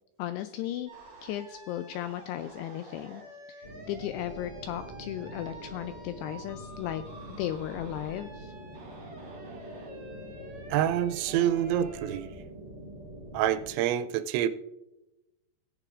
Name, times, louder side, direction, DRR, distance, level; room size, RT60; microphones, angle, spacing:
voice 1, 0.2-0.9 1.2-3.2 3.5-8.5, left 12 dB, 85° left, 9 dB, 2.4 m, -36 dB
sound 1, 0.9-12.2, right 2 dB, 40° right, 4.1 m, -49 dB
sound 2, 3.6-13.7, right 1 dB, 10° left, 3.0 m, -45 dB
voice 2, 10.7-12.3 13.3-14.5, right 11 dB, 90° right, 11 dB, 2.9 m, -27 dB
17.0 x 9.8 x 2.5 m, 0.96 s
omnidirectional pair, 5.2 m